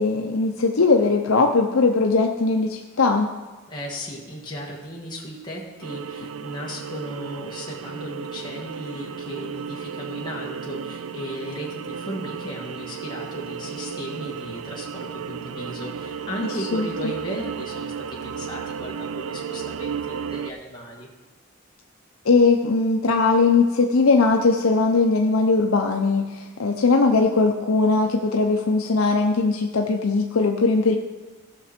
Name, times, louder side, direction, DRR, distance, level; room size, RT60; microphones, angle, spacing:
voice 1, 0.0-3.3 16.7-16.9 22.2-31.0, left 3 dB, 80° left, 2 dB, 0.7 m, -20 dB
voice 2, 3.7-21.1, equal, 20° left, -4 dB, 1.8 m, -36 dB
sound 1, 5.8-20.5, right 7 dB, 85° right, 0.5 m, -34 dB
16.5 x 6.0 x 4.4 m, 1.3 s
head